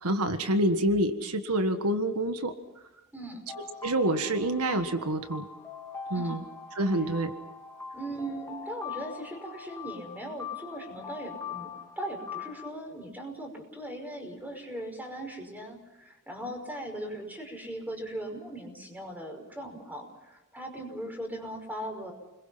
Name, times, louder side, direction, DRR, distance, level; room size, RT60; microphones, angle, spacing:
voice 1, 0.0-2.5 3.8-5.5 6.1-6.4 6.7-7.3, right 1 dB, 85° right, 8 dB, 1.6 m, -27 dB
voice 2, 3.1-3.5 6.1-6.3 7.9-22.1, right 1 dB, 10° right, 3 dB, 5.6 m, -39 dB
sound 1, 3.5-12.7, left 6 dB, 15° left, 2.9 m, -42 dB
30.0 x 22.0 x 5.8 m, 1.0 s
head